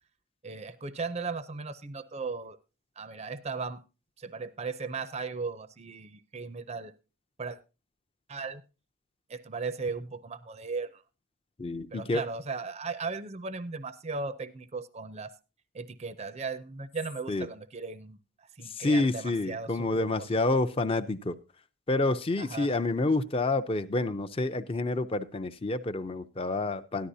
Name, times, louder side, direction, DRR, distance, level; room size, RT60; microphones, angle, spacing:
voice 1, 0.4-2.6 3.0-3.8 4.2-6.9 7.4-7.6 8.3-8.6 9.3-10.9 11.9-15.3 15.7-18.2 18.6-20.1 22.4-22.7, right 4 dB, 30° right, 13 dB, 0.5 m, -37 dB
voice 2, 11.6-12.2 17.3-17.5 18.6-21.3 21.9-27.1, left 2 dB, 25° left, 10 dB, 0.5 m, -28 dB
13.5 x 11.5 x 2.7 m, 0.30 s
head